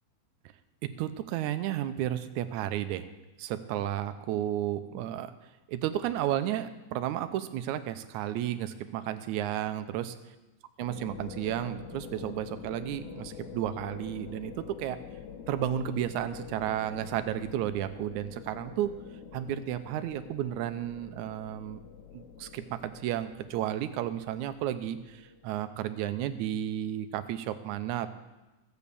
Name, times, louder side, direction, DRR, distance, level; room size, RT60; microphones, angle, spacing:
voice 1, 1.0-3.1 3.4-5.3 5.7-10.1 10.8-15.0 15.5-18.9 19.3-21.8 22.1-28.1, right 11 dB, 75° right, 10 dB, 2.0 m, -32 dB
sound 1, 10.8-25.9, left 8 dB, 75° left, 2.3 m, -46 dB
14.0 x 8.3 x 6.9 m, 1.1 s
omnidirectional pair, 3.6 m